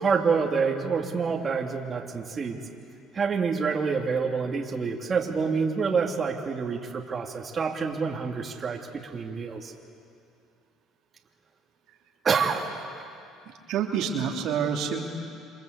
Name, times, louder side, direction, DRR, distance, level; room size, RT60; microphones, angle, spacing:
voice 1, 0.0-2.6 3.1-9.7 12.2-12.8, right 5 dB, 35° right, 0 dB, 2.9 m, -27 dB
voice 2, 13.7-15.1, right 7 dB, 70° right, 1 dB, 3.0 m, -27 dB
28.5 x 25.0 x 8.3 m, 2.5 s
supercardioid pair, 85°, 0 cm